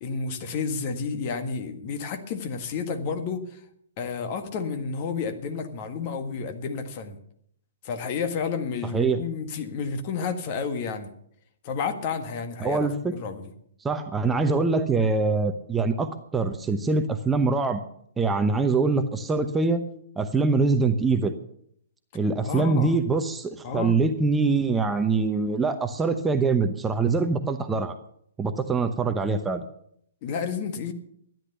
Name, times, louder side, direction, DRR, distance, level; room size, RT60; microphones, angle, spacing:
voice 1, 0.0-3.6 4.0-7.2 7.8-11.1 11.6-13.5 22.4-23.0 23.6-24.0 30.2-30.9, left 5 dB, 40° left, 7 dB, 1.7 m, -31 dB
voice 2, 8.9-9.2 12.6-13.2 13.8-17.8 18.2-19.8 20.2-21.3 22.1-27.9 28.4-29.7, right 4 dB, 10° right, 7 dB, 0.9 m, -24 dB
13.0 x 10.5 x 6.8 m, 0.69 s
figure-of-eight pair, 120°, 0 cm